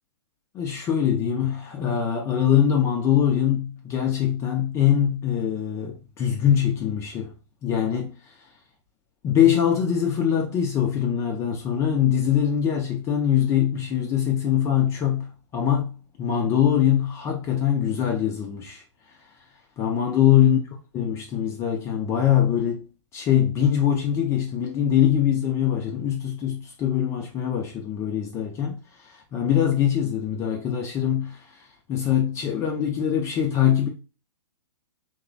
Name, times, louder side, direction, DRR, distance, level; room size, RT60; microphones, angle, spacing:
voice 1, 0.5-7.3 7.6-8.1 9.2-18.8 19.8-20.6 20.9-22.8 23.1-28.8 29.3-31.4 31.9-33.9, left 9 dB, 15° left, 0.3 m, -23 dB
2.9 x 2.0 x 2.5 m
hypercardioid pair, 130°, 16 cm